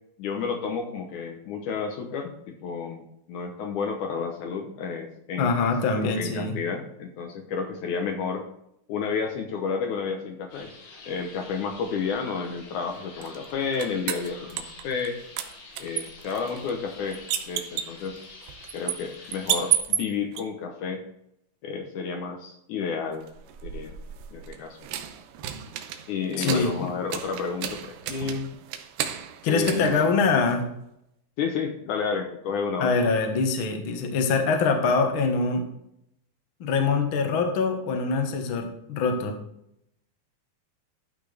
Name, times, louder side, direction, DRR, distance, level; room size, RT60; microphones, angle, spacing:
voice 1, 0.2-5.5 6.0-8.5 8.9-10.7 11.1-15.2 15.8-17.2 17.5-18.2 18.7-21.0 21.6-23.2 23.6-23.9 24.3-24.8 26.1-28.5 29.5-30.2 31.4-32.9, left 5 dB, 70° left, 3 dB, 2.1 m, -31 dB
voice 2, 5.4-6.5 26.4-26.7 29.4-30.6 32.8-35.6 36.6-39.4, left 4 dB, 55° left, 3 dB, 1.6 m, -24 dB
sound 1, 10.5-19.8, left 3 dB, 85° left, 4.6 m, -47 dB
sound 2, 13.2-15.1 15.4-20.4 23.2-30.7, right 11 dB, 90° right, 2.7 m, -33 dB
13.5 x 6.0 x 3.3 m, 0.77 s
omnidirectional pair, 4.2 m